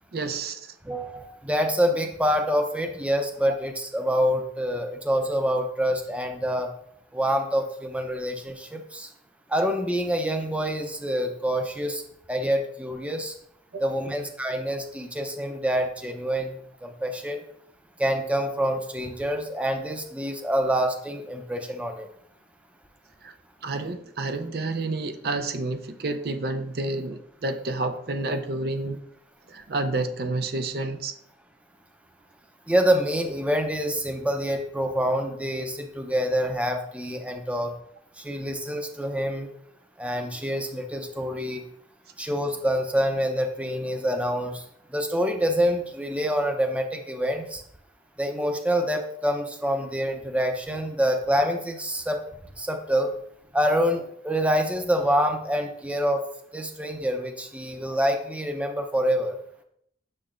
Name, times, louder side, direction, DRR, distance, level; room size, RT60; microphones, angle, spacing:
voice 1, 0.1-0.7 13.7-13.8 23.2-23.3 23.6-29.0 29.5-31.1, right 2 dB, 60° right, 7 dB, 0.6 m, -29 dB
voice 2, 0.8-6.7 7.1-9.1 9.5-12.0 12.3-13.3 13.8-16.5 16.8-17.4 18.0-22.1 32.7-37.8 38.2-39.5 40.0-41.6 42.2-44.6 44.9-47.6 48.2-52.2 52.6-53.1 53.5-56.2 56.5-59.4, equal, 5° right, 4 dB, 0.6 m, -26 dB
8.6 x 6.6 x 2.5 m, 0.72 s
head